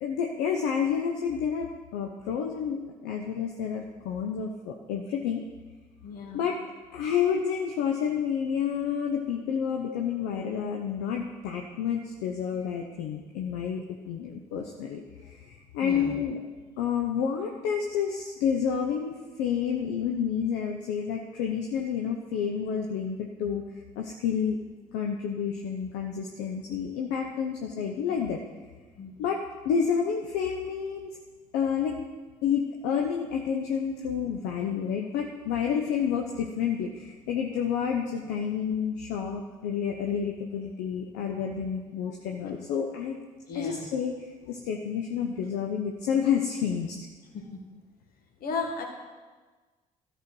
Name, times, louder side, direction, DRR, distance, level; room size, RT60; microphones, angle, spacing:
voice 1, 0.0-5.4 6.3-6.6 6.9-16.4 16.8-23.6 24.0-24.6 24.9-28.4 29.2-31.1 31.5-32.0 32.4-43.2 43.5-47.0, left 7 dB, 75° left, 2 dB, 0.8 m, -29 dB
voice 2, 6.0-6.5 15.8-16.2 29.0-29.1 43.5-43.9 47.3-47.6 48.4-48.8, left 4 dB, 60° left, 3 dB, 1.8 m, -34 dB
13.0 x 4.4 x 6.2 m, 1.3 s
hypercardioid pair, 50°, 18 cm